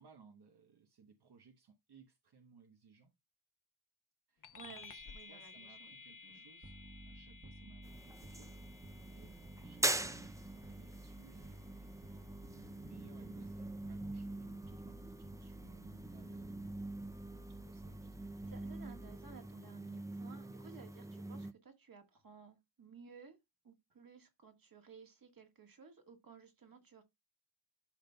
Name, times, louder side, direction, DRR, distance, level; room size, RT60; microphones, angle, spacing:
voice 1, 0.0-3.1 4.3-6.7 7.1-16.6 17.2-18.4, right 5 dB, 80° right, 1.0 m, -63 dB
sound 1, 4.4-14.3, left 4 dB, 55° left, 0.8 m, -57 dB
voice 2, 4.5-6.0 6.2-6.4 18.5-23.4 23.6-27.0, right 6 dB, 60° right, 1.7 m, -57 dB
sound 2, 6.6-19.5, right 1 dB, 35° right, 1.2 m, -53 dB
sound 3, 7.8-21.5, right 2 dB, 10° right, 0.4 m, -44 dB
11.5 x 5.2 x 2.3 m
wide cardioid pair, 140°, 39 cm